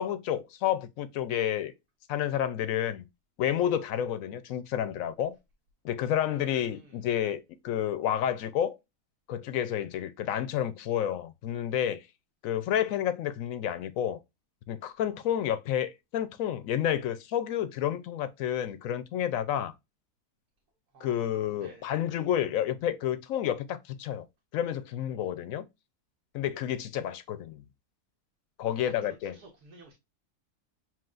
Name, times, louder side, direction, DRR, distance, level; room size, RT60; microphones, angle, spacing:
voice 1, 0.0-1.7 2.1-3.0 3.4-5.4 5.8-8.8 9.3-12.0 12.4-14.2 14.7-19.7 21.0-24.2 24.5-25.6 26.3-27.6 28.6-29.3, left 10 dB, 70° left, 0.9 m, -30 dB
voice 2, 6.2-7.1 20.9-21.9 28.6-29.9, right 2 dB, 75° right, 1.5 m, -53 dB
7.3 x 2.4 x 2.4 m
omnidirectional pair, 1.7 m